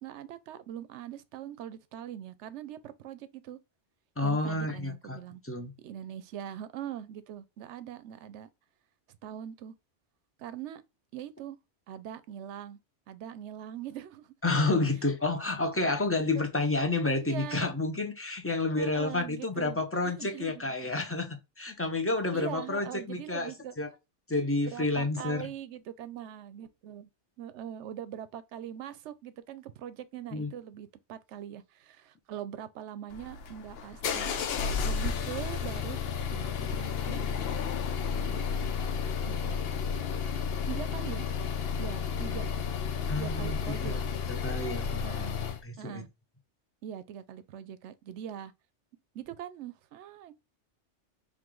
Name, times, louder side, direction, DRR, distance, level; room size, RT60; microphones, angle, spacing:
voice 1, 0.0-3.6 4.2-5.4 5.8-8.5 9.1-9.7 10.4-10.8 11.1-11.6 11.9-12.8 13.1-14.3 16.3-16.5 17.1-17.7 18.8-20.7 22.3-23.7 24.7-27.1 27.4-34.3 34.8-36.0 36.3-37.2 38.1-38.5 39.2-39.6 40.7-41.3 41.8-42.5 43.1-43.9 45.0-45.4 45.8-46.1 46.8-48.5 49.1-50.3, right 10 dB, 75° right, 0.9 m, -42 dB
voice 2, 4.2-5.2 5.4-5.7 14.4-23.5 23.8-23.9 24.3-25.5 30.3-30.5 43.1-45.0 45.6-46.0, left 2 dB, 15° left, 0.6 m, -30 dB
sound 1, 33.1-45.6, left 6 dB, 60° left, 0.8 m, -32 dB
4.7 x 2.5 x 3.8 m
omnidirectional pair, 1.2 m